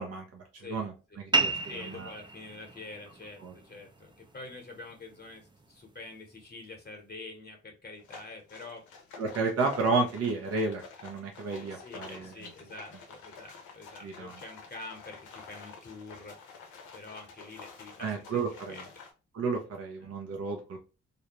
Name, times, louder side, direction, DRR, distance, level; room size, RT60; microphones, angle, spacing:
voice 1, 0.0-1.5 1.8-2.1 3.4-3.5 9.2-12.3 14.0-14.3 18.0-18.8 19.3-20.8, right 3 dB, 55° right, 1 dB, 0.7 m, -32 dB
voice 2, 0.6-1.2 1.7-8.8 11.6-18.9 20.0-20.1, left 3 dB, 35° left, 3 dB, 0.9 m, -46 dB
sound 1, 1.3-6.4, right 3 dB, 15° right, 0.5 m, -35 dB
sound 2, 8.0-19.1, left 5 dB, 80° left, 0.6 m, -49 dB
2.6 x 2.0 x 2.9 m, 0.32 s
supercardioid pair, 45°, 30 cm